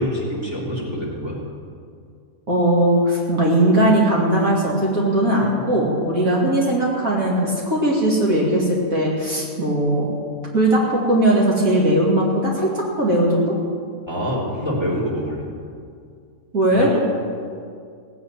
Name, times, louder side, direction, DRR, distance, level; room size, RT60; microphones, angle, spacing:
voice 1, 0.0-1.4 14.1-15.4 16.7-17.0, equal, 15° right, -5 dB, 3.5 m, -25 dB
voice 2, 2.5-10.1 10.5-13.5 16.5-17.0, right 1 dB, 65° right, -4 dB, 2.8 m, -19 dB
17.0 x 8.2 x 9.1 m, 2.3 s
omnidirectional pair, 1.6 m